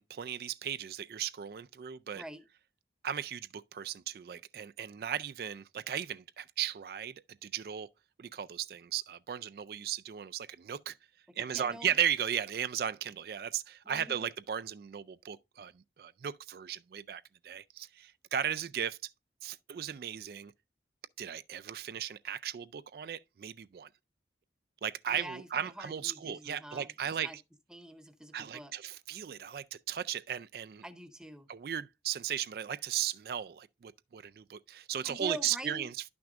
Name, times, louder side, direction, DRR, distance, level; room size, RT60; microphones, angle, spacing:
voice 1, 0.0-2.2 3.0-7.1 7.4-7.9 8.2-10.9 11.4-19.1 19.4-20.5 21.2-23.9 24.8-27.3 28.3-30.8 31.5-35.9, right 9 dB, 60° right, 0.3 m, -36 dB
voice 2, 11.3-12.0 13.8-14.3 25.1-26.9 27.2-27.4 27.7-28.7 30.8-31.5 35.0-35.9, right 1 dB, 5° right, 0.6 m, -45 dB
11.5 x 6.0 x 2.4 m
head